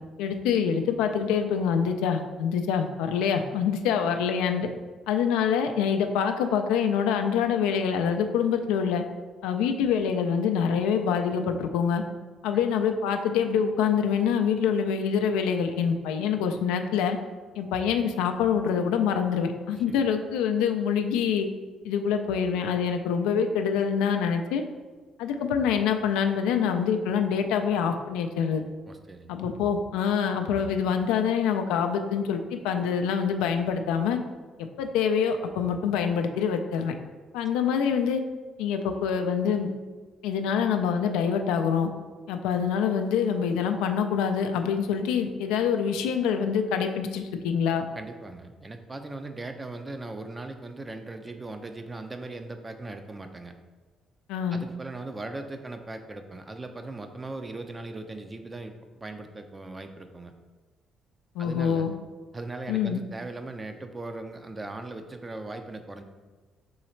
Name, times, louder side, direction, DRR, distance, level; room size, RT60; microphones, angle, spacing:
voice 1, 0.2-4.7 5.1-9.0 9.4-12.0 12.4-17.2 17.6-21.5 21.8-24.6 25.2-28.7 29.3-34.2 34.6-36.9 37.3-38.2 38.6-39.7 40.2-41.9 42.3-47.8 54.3-54.6 61.4-61.9 62.7-63.0, left 7 dB, 85° left, 6 dB, 0.4 m, -25 dB
voice 2, 28.9-29.4 47.9-53.5 54.5-60.3 61.4-61.9 62.3-66.0, right 2 dB, 25° right, 7 dB, 0.5 m, -39 dB
3.9 x 3.1 x 4.4 m, 1.4 s
supercardioid pair, 65°, 0 cm